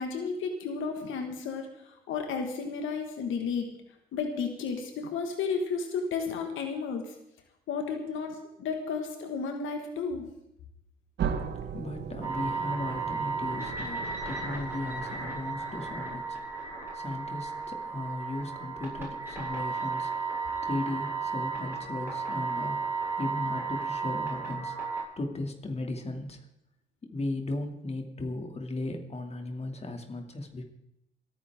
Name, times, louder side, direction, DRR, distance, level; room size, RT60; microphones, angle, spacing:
voice 1, 0.0-1.7 2.1-3.7 4.1-7.1 7.7-10.2, left 5 dB, 80° left, 4 dB, 1.8 m, -32 dB
sound 1, 11.2-15.9, right 7 dB, 65° right, 1.4 m, -37 dB
voice 2, 11.7-22.8 23.2-24.8 25.2-26.4 27.1-30.6, left 2 dB, 30° left, 3 dB, 2.7 m, -36 dB
sound 2, 12.2-25.0, right 4 dB, 10° right, 7.7 m, -34 dB
27.5 x 9.9 x 3.7 m, 0.80 s
cardioid pair, 90°, 20 cm